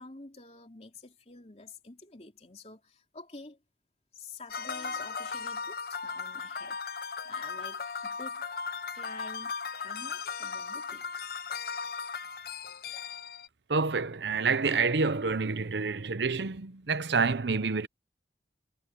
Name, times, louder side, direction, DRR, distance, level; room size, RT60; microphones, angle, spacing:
voice 1, 0.0-3.6 4.1-8.6 8.9-11.3, left 3 dB, 35° left, 3.1 m, -49 dB
sound 1, 4.5-13.5, left 5 dB, 55° left, 0.7 m, -37 dB
voice 2, 13.7-17.9, right 4 dB, 80° right, 0.8 m, -28 dB
head